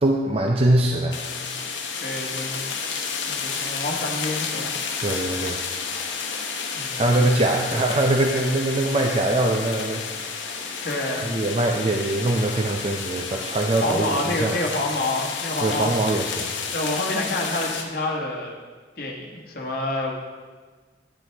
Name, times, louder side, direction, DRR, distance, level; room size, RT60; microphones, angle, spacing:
voice 1, 0.0-1.1 5.0-5.6 7.0-10.3 10.6-10.8 11.2-14.6 15.6-16.5, right 1 dB, 30° right, 2 dB, 0.4 m, -23 dB
sound 1, 1.1-17.8, left 5 dB, 85° left, 0.9 m, -31 dB
voice 2, 2.0-2.7 3.3-4.7 6.7-8.1 10.1-10.2 10.6-11.4 13.8-15.9 16.7-18.5 19.0-20.1, left 2 dB, 55° left, -1 dB, 1.2 m, -28 dB
9.5 x 7.5 x 3.4 m, 1.4 s
head